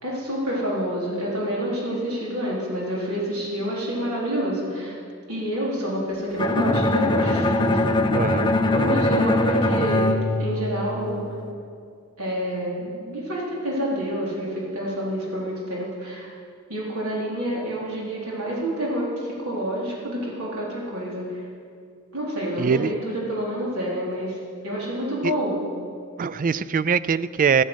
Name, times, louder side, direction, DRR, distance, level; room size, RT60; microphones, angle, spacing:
voice 1, 0.0-4.9 5.3-7.8 8.6-11.2 12.2-16.3 16.7-21.3 22.1-24.4 24.6-25.6, equal, 85° right, -5 dB, 4.1 m, -28 dB
Bowed string instrument, 6.4-11.3, left 2 dB, 20° left, 0.9 m, -22 dB
voice 2, 8.1-8.5 22.6-22.9 25.2-25.3 26.2-27.6, right 6 dB, 40° right, 17 dB, 0.4 m, -22 dB
14.5 x 13.5 x 6.4 m, 2.3 s
head